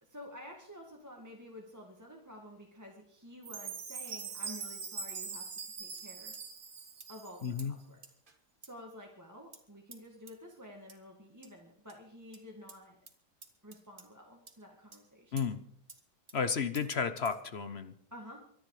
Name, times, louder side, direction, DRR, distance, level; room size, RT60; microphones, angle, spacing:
voice 1, 0.0-6.3 7.1-8.0 8.6-13.0 13.6-15.5 18.1-18.5, left 1 dB, 10° right, -1 dB, 1.8 m, -51 dB
Chime, 3.4-7.6, right 5 dB, 75° right, 2.3 m, -42 dB
sound 1, 4.1-4.3 5.1-5.3 5.6-6.1 6.3-6.4 7.0-7.1 7.6-7.7 8.0-8.4 8.6-8.7 9.5-9.6 9.9-10.0 10.3-10.4 10.9-11.0 11.4-11.5 11.9-12.0 12.3-12.4 12.7-12.8 13.1-13.2 13.4-14.1 14.5-14.6 14.9-15.0 15.4-15.5 15.9-16.0 16.3-16.4 16.8-16.9 17.3-17.4, right 3 dB, 30° right, 1.9 m, -53 dB
voice 2, 7.4-7.7 15.3-15.6 16.3-17.9, left 6 dB, 45° left, 11 dB, 1.0 m, -32 dB
24.0 x 10.5 x 4.9 m, 0.66 s
omnidirectional pair, 1.8 m